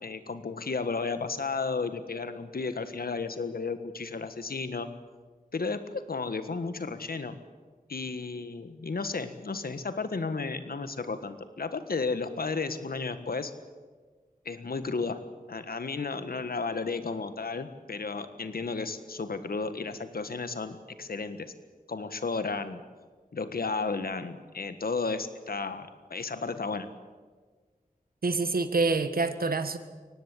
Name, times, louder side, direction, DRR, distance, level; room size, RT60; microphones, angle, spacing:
voice 1, 0.0-4.9 5.5-7.4 7.9-13.5 14.4-15.2 15.5-21.5 21.9-22.8 23.3-26.9, left 4 dB, 90° left, 10 dB, 1.6 m, -33 dB
voice 2, 28.2-29.8, right 3 dB, 80° right, 9 dB, 1.6 m, -26 dB
23.5 x 18.0 x 8.5 m, 1.4 s
wide cardioid pair, 55°, 15 cm